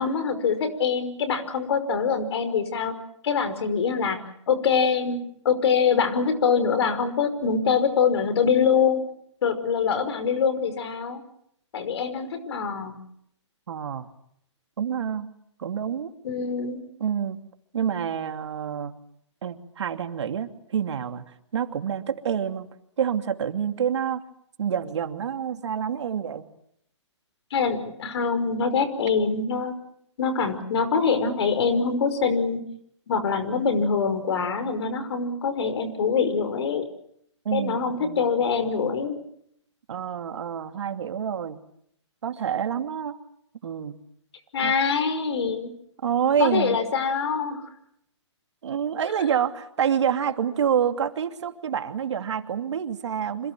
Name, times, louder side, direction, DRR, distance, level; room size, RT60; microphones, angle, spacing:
voice 1, 0.0-3.0 3.2-4.2 4.5-5.2 5.4-9.0 9.4-11.2 11.7-13.0 16.2-16.8 27.5-29.7 30.2-32.6 33.1-36.9 37.5-39.2 44.5-45.7 46.4-47.7, left 6 dB, 60° left, 5.5 m, -24 dB
voice 2, 13.7-14.1 14.8-15.3 15.6-16.1 17.0-17.4 17.7-18.9 19.4-21.2 21.5-22.7 23.0-24.2 24.6-26.5 37.4-38.3 39.9-41.6 42.2-43.2 43.6-43.9 44.6-44.7 46.0-46.8 48.6-53.5, right 8 dB, 65° right, 2.7 m, -27 dB
28.0 x 26.5 x 6.2 m
hypercardioid pair, 135°, 16 cm